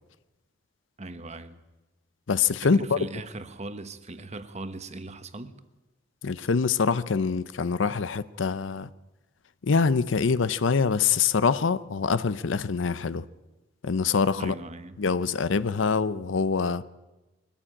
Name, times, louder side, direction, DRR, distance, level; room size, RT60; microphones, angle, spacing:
voice 1, 1.0-1.6 2.6-5.5 14.4-15.0, right 2 dB, 35° right, 1.2 m, -39 dB
voice 2, 2.3-3.0 6.2-8.9 9.6-13.2 13.8-14.5 15.0-16.8, left 5 dB, 80° left, 0.6 m, -24 dB
21.0 x 14.5 x 8.8 m
head